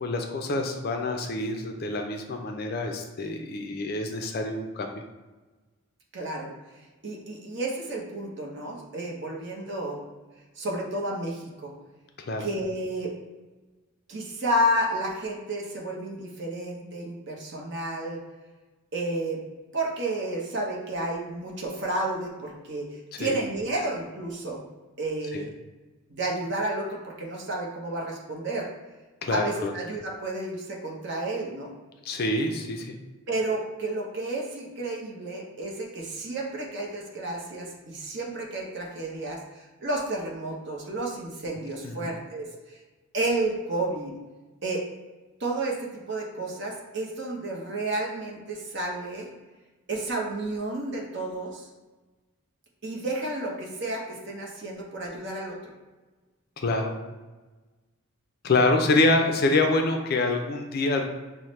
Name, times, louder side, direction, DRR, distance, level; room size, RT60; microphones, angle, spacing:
voice 1, 0.0-4.9 12.2-12.5 23.1-23.4 25.3-25.5 29.2-29.7 32.0-33.0 41.8-42.1 56.6-57.0 58.4-61.0, left 2 dB, 45° left, 3 dB, 0.4 m, -26 dB
voice 2, 6.1-6.5 7.0-10.0 10.6-11.7 12.4-13.1 14.1-18.2 18.9-19.4 19.7-24.6 25.0-25.5 26.1-28.7 29.3-31.7 33.3-42.8 43.1-44.1 44.6-44.8 45.4-49.3 49.9-51.7 52.8-55.7, right 1 dB, 50° right, -1 dB, 0.7 m, -31 dB
5.5 x 2.1 x 3.1 m, 1.2 s
head